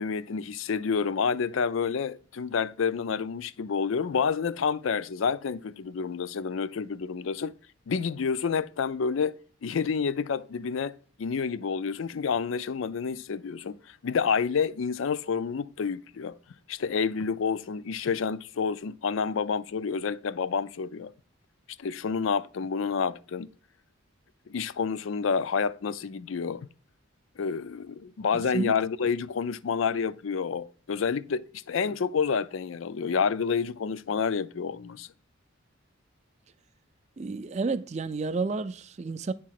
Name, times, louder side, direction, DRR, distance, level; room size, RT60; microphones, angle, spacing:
voice 1, 0.0-7.5 7.9-16.4 16.7-21.1 21.8-23.5 24.5-26.7 27.4-35.1, left 6 dB, 70° left, 0.4 m, -29 dB
voice 2, 28.3-28.7 37.2-39.3, right 3 dB, 30° right, 0.4 m, -31 dB
10.0 x 3.7 x 5.8 m
head